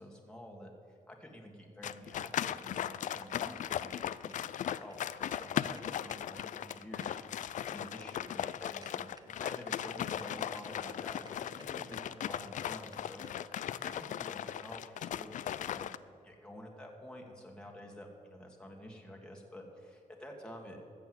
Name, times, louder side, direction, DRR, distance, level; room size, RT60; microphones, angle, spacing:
voice 1, 0.0-4.0 4.2-13.3 13.6-15.9 16.2-20.8, equal, 5° left, 0 dB, 1.8 m, -50 dB
sound 1, 1.8-16.0, left 10 dB, 65° left, 0.4 m, -38 dB
sound 2, 3.4-9.9 10.2-10.3 10.6-11.0 11.3-12.0 12.3-12.4 12.6-12.7 12.9-13.0 13.2-13.3 13.6-13.7 13.9-14.0 14.3-14.4 14.6-14.7 15.6-15.7, right 3 dB, 30° right, 1.1 m, -60 dB
14.0 x 7.0 x 7.8 m, 2.5 s
cardioid pair, 95°, 14 cm